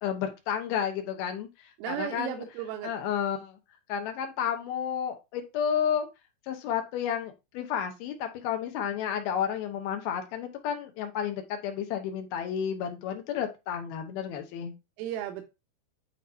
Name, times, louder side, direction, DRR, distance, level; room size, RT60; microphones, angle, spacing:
voice 1, 0.0-2.4 2.8-3.6 3.9-6.1 6.5-14.7, left 8 dB, 75° left, 2.4 m, -31 dB
voice 2, 1.8-3.0 15.0-15.5, right 12 dB, 85° right, 3.1 m, -35 dB
9.9 x 3.9 x 2.7 m
omnidirectional pair, 5.5 m